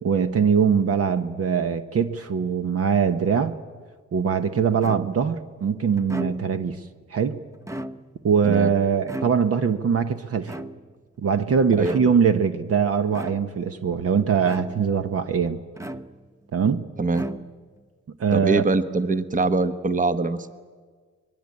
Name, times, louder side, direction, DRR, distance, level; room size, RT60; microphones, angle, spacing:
voice 1, 0.0-3.6 4.1-6.8 7.1-7.4 8.2-10.5 11.2-15.6 16.5-16.8 18.2-18.6, right 6 dB, 50° right, 10 dB, 1.1 m, -22 dB
sound 1, 4.8-5.4 6.0-6.7 7.5-8.3 9.1-9.8 10.5-11.1 11.8-12.4 13.1-13.7 14.4-15.0 15.8-16.5 17.1-17.8, right 1 dB, 10° right, 0.8 m, -36 dB
voice 2, 18.3-20.5, right 3 dB, 25° right, 11 dB, 1.2 m, -23 dB
24.5 x 20.5 x 8.6 m, 1.5 s
cardioid pair, 90°, 30 cm